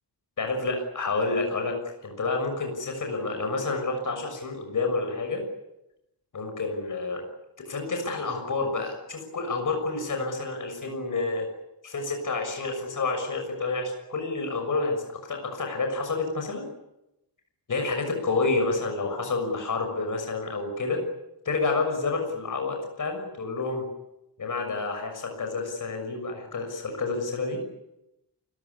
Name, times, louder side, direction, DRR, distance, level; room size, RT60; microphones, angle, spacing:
voice 1, 0.4-5.4 6.3-7.2 7.6-11.5 11.8-16.6 17.7-21.0 21.4-23.9 24.4-27.6, left 3 dB, 45° left, 4 dB, 6.4 m, -29 dB
29.0 x 17.0 x 9.9 m, 0.91 s
wide cardioid pair, 175°, 41 cm